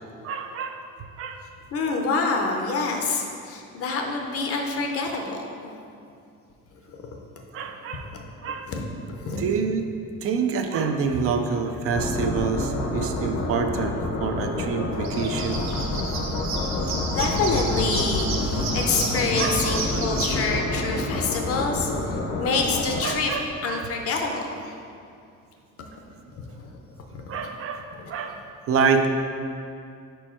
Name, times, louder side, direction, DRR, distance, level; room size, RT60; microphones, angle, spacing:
voice 1, 0.2-0.8 1.2-1.4 7.5-8.1 8.4-8.7 9.3-9.8 10.2-15.6 19.4-19.8 23.0-23.9 27.3-29.1, right 5 dB, 50° right, 6 dB, 0.5 m, -27 dB
voice 2, 1.7-5.5 8.6-8.8 9.1-9.4 15.7-16.1 17.1-21.9 22.4-23.4 23.6-24.7 26.4-26.7 27.1-27.2 27.9-28.1, left 4 dB, 50° left, 2 dB, 0.6 m, -27 dB
sound 1, 11.9-23.6, left 2 dB, 75° left, 0.9 m, -28 dB
sound 2, 14.9-20.4, right 4 dB, 65° right, 0.8 m, -32 dB
5.3 x 4.6 x 4.3 m, 2.4 s
cardioid pair, 165°, 30 cm